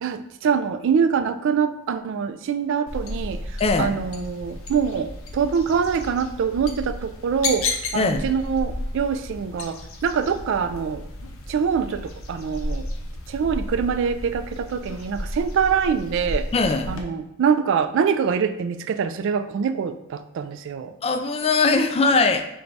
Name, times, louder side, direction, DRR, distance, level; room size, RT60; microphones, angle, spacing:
voice 1, 0.0-3.4 3.8-11.1 11.5-12.9 13.3-16.5 16.9-20.9, right 6 dB, 60° right, 10 dB, 0.3 m, -24 dB
sound 1, 2.9-17.0, left 2 dB, 75° left, 0.6 m, -33 dB
voice 2, 3.6-3.9 7.9-8.2 16.5-16.9 21.0-22.4, left 3 dB, 30° left, 6 dB, 0.3 m, -20 dB
4.5 x 2.2 x 3.9 m, 0.84 s
head